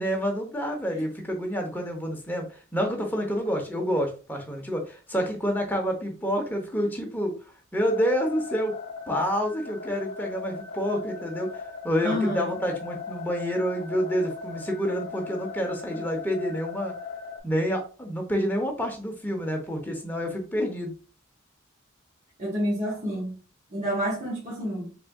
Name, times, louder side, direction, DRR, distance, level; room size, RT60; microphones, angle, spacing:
voice 1, 0.0-2.5 2.7-7.3 7.7-8.7 9.1-16.9 17.4-20.9, equal, 10° left, 0.8 m, -28 dB
sound 1, 7.8-17.4, left 5 dB, 40° left, 1.2 m, -39 dB
voice 2, 12.0-12.5 22.4-23.3 23.7-24.9, equal, 35° right, 1.3 m, -28 dB
4.0 x 3.5 x 2.3 m
head